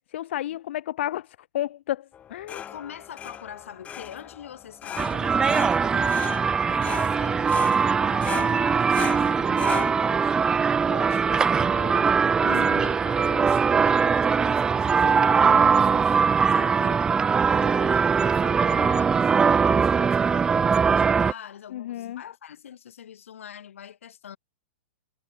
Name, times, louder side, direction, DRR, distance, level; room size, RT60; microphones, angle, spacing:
voice 1, 0.1-2.6 12.4-12.8 21.7-22.2, left 13 dB, 60° left, 0.7 m, -32 dB
sound 1, 2.1-11.9, left 9 dB, 20° left, 3.0 m, -38 dB
voice 2, 2.7-6.3 6.7-10.4 10.9-12.1 12.4-16.2 16.5-17.1 17.5-24.4, left 9 dB, 80° left, 6.6 m, -43 dB
sound 2, 5.0-21.3, right 6 dB, 10° right, 0.3 m, -21 dB
hypercardioid pair, 145°, 7 cm